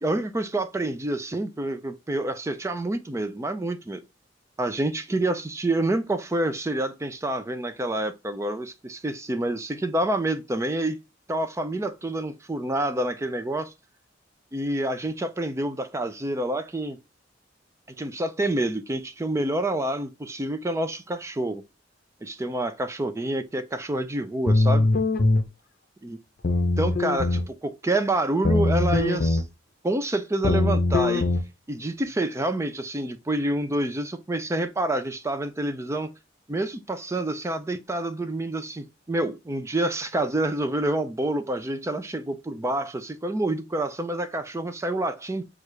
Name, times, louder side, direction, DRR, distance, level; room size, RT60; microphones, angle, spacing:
voice 1, 0.0-4.0 4.6-11.0 11.3-13.7 14.5-17.0 18.0-21.6 22.2-24.9 26.0-26.2 26.8-29.4 29.8-31.3 31.7-36.1 36.5-45.4, right 1 dB, 15° right, 0.4 m, -28 dB
sound 1, 24.5-25.4 26.4-27.5 28.4-29.4 30.4-31.4, left 2 dB, 50° left, 0.7 m, -21 dB
6.4 x 2.4 x 3.2 m
head